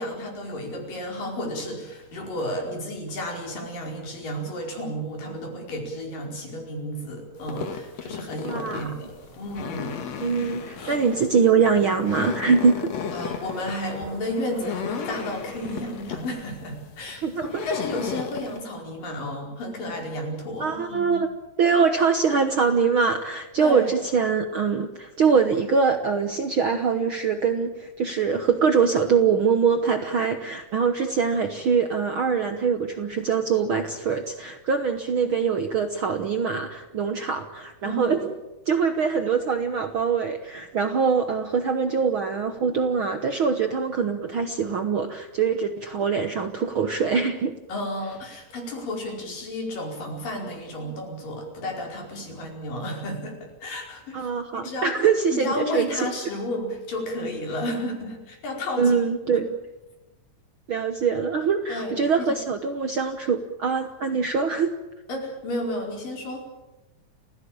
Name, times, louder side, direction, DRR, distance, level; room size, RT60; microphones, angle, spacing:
voice 1, 0.0-9.9 10.8-11.0 13.1-21.2 23.6-23.9 37.8-38.1 47.7-54.9 55.3-59.0 59.3-59.4 61.7-62.3 65.1-66.4, left 1 dB, 75° left, 1 dB, 6.5 m, -32 dB
sound 1, 6.7-15.9, right 1 dB, 85° right, 9.6 m, -46 dB
sound 2, 7.4-18.6, left 7 dB, 55° left, 2.6 m, -35 dB
voice 2, 8.4-8.9 10.2-12.9 17.2-17.7 20.6-21.3 21.6-38.3 38.7-47.5 54.1-56.1 58.8-59.4 60.7-64.7, right 5 dB, 65° right, 7 dB, 1.3 m, -23 dB
30.0 x 16.0 x 8.8 m, 1.1 s
omnidirectional pair, 3.9 m